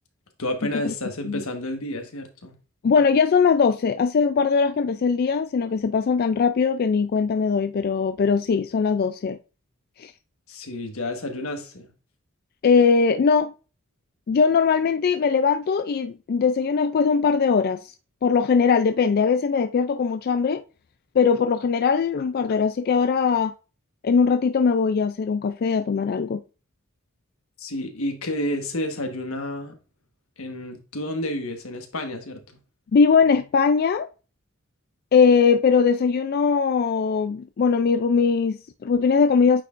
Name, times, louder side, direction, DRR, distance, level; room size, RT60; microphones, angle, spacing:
voice 1, 0.4-2.6 10.5-11.9 27.6-29.7 30.4-32.6, left 1 dB, 85° left, 1.4 m, -30 dB
voice 2, 2.8-9.4 10.0-10.1 12.6-13.5 14.3-17.9 18.2-20.6 21.1-23.5 24.0-26.4 32.9-34.1 35.1-39.6, left 5 dB, 45° left, 0.3 m, -20 dB
8.9 x 4.3 x 2.5 m
head